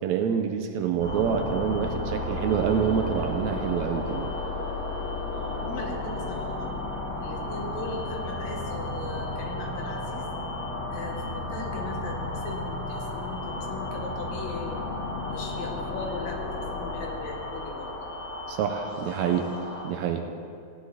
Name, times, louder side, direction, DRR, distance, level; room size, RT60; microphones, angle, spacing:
voice 1, 0.0-4.4 18.5-19.5 19.8-20.2, right 7 dB, 80° right, 5 dB, 1.8 m, -27 dB
sound 1, 1.0-19.8, left 2 dB, 5° left, 3.1 m, -33 dB
voice 2, 5.3-6.8 7.2-10.3 10.9-14.8 15.3-17.9, left 3 dB, 65° left, 0 dB, 2.5 m, -39 dB
16.0 x 9.9 x 4.1 m, 2.3 s
omnidirectional pair, 3.5 m